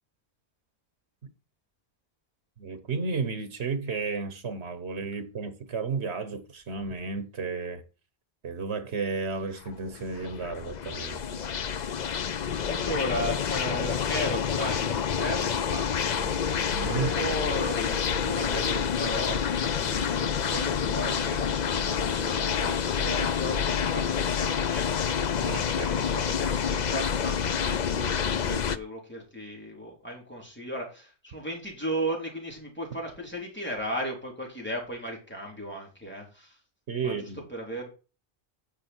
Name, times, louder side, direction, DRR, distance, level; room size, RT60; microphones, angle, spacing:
voice 1, 2.6-7.8 8.4-11.4 16.7-17.2 25.4-25.9 36.9-37.4, right 4 dB, 80° right, 1.5 m, -33 dB
sound 1, 9.7-28.8, left 7 dB, 50° left, 0.7 m, -28 dB
voice 2, 12.7-16.3 17.1-25.3 25.7-36.6 37.0-37.9, equal, 10° left, 3.8 m, -36 dB
10.5 x 6.4 x 4.5 m
omnidirectional pair, 1.1 m